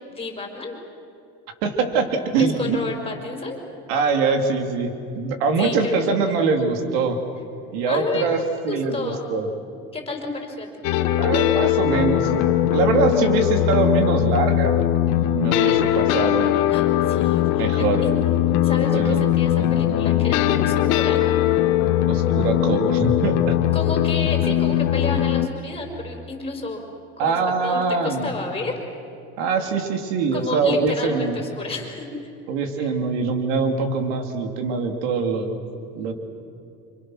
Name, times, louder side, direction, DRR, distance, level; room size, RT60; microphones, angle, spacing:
voice 1, 0.1-0.8 2.4-3.6 5.6-6.4 7.9-9.3 9.9-10.7 16.7-18.1 18.6-21.2 23.7-26.8 27.2-27.4 27.6-28.8 30.3-32.1 32.8-32.9 36.0-36.1, left 3 dB, 20° left, 2 dB, 5.3 m, -31 dB
voice 2, 1.6-2.8 3.9-7.2 7.7-9.5 11.2-14.8 15.3-16.6 17.6-18.1 18.9-19.3 22.1-23.6 24.4-24.6 27.2-28.3 29.4-31.4 32.5-35.6 35.9-36.1, right 4 dB, 85° right, 5 dB, 3.0 m, -23 dB
sound 1, 10.8-25.5, left 12 dB, 75° left, 1.5 m, -20 dB
29.5 x 26.5 x 6.4 m, 2.6 s
cardioid pair, 125°, 30 cm